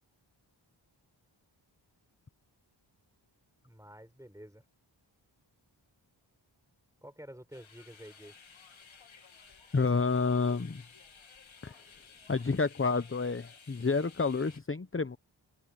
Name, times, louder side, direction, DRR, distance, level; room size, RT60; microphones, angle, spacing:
voice 1, 3.6-4.6 7.0-8.3, equal, 5° right, 7.1 m, -50 dB
sound 1, 7.5-14.6, left 5 dB, 75° left, 2.7 m, -56 dB
voice 2, 9.7-10.8 11.6-11.7 12.3-15.2, left 4 dB, 25° left, 1.0 m, -29 dB
cardioid pair, 45°, 47 cm